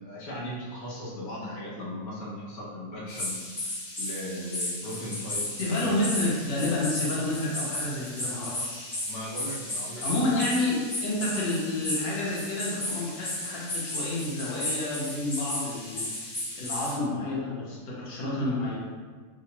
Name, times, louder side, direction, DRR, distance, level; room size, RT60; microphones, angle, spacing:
voice 1, 0.0-3.3 4.0-5.9 9.1-10.0, left 1 dB, 60° left, -6 dB, 1.3 m, -37 dB
sound 1, 3.1-17.0, left 1 dB, 30° left, 1.2 m, -34 dB
voice 2, 5.6-9.1 10.0-16.1 16.6-18.8, left 2 dB, 85° left, -6 dB, 1.6 m, -29 dB
4.8 x 2.8 x 2.9 m, 1.5 s
omnidirectional pair, 1.8 m